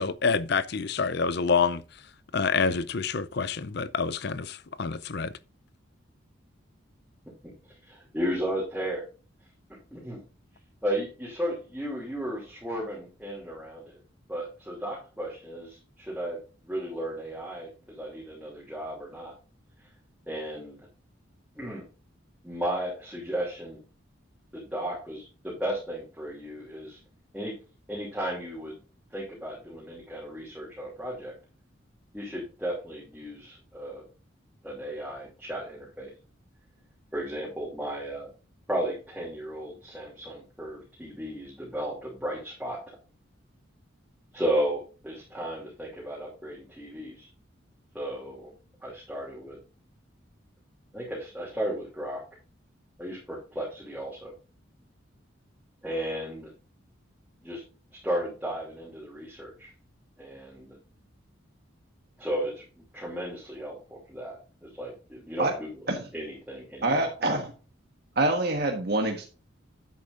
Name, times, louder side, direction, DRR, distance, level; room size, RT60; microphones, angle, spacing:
voice 1, 0.0-1.8 2.3-5.3, left 5 dB, 55° left, 0.5 m, -27 dB
voice 2, 7.8-9.0 9.9-10.2 10.8-14.0 14.3-19.3 20.3-20.9 21.6-21.8 22.4-23.8 24.5-27.0 27.3-27.5 27.9-28.8 29.1-31.3 32.1-34.0 34.6-36.1 37.1-38.3 38.7-42.8 44.3-47.3 47.9-48.5 48.8-49.6 50.9-52.2 53.0-54.3 55.8-56.5 57.4-57.6 57.9-59.7 60.2-60.8 62.2-62.6 62.9-65.9 66.1-67.1, right 1 dB, 5° right, 2.7 m, -34 dB
voice 3, 66.8-67.5 68.2-69.2, right 2 dB, 50° right, 1.3 m, -25 dB
10.5 x 8.5 x 2.5 m
head